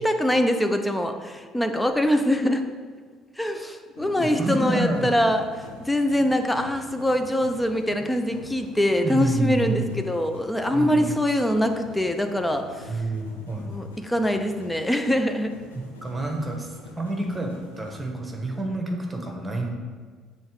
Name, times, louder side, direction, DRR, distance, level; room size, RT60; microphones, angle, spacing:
voice 1, 0.0-2.6 3.4-5.4 5.8-12.9 13.7-15.5, left 1 dB, 10° left, 6 dB, 0.7 m, -23 dB
sound 1, 4.0-18.1, left 2 dB, 85° left, 0.7 m, -46 dB
voice 2, 4.2-5.1 9.0-9.9 10.7-11.2 12.9-13.7 15.7-19.7, right 2 dB, 20° right, 2 dB, 1.2 m, -28 dB
7.4 x 3.2 x 4.8 m, 1.5 s
figure-of-eight pair, 55°, 0 cm